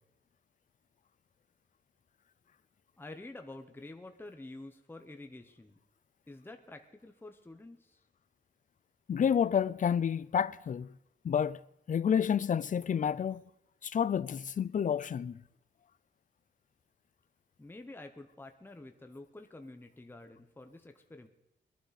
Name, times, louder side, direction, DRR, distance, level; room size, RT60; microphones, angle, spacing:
voice 1, 3.0-5.8 6.3-8.0 17.6-21.3, left 2 dB, 10° left, 0.8 m, -49 dB
voice 2, 9.1-10.9 11.2-11.6 11.9-13.4 13.8-15.4, left 8 dB, 40° left, 0.4 m, -29 dB
21.5 x 11.5 x 4.1 m
wide cardioid pair, 140°, 20 cm